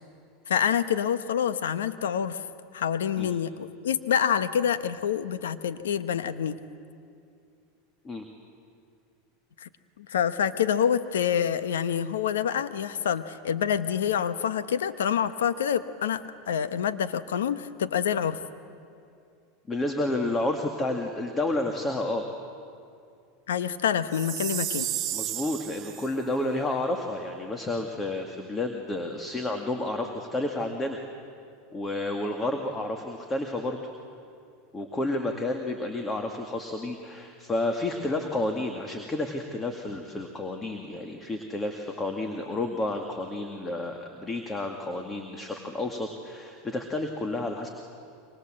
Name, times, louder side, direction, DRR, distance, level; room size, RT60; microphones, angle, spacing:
voice 1, 0.5-2.4 2.7-6.6 9.6-9.7 10.0-18.4 23.5-24.9, left 8 dB, 90° left, 12 dB, 1.1 m, -27 dB
voice 2, 19.7-22.3 25.1-31.0 31.7-33.8 34.7-47.7, left 2 dB, 20° left, 4 dB, 2.2 m, -30 dB
Chime, 24.1-26.1, right 13 dB, 40° right, 1.4 m, -32 dB
28.0 x 24.5 x 7.7 m, 2.5 s
hypercardioid pair, 105°, 0 cm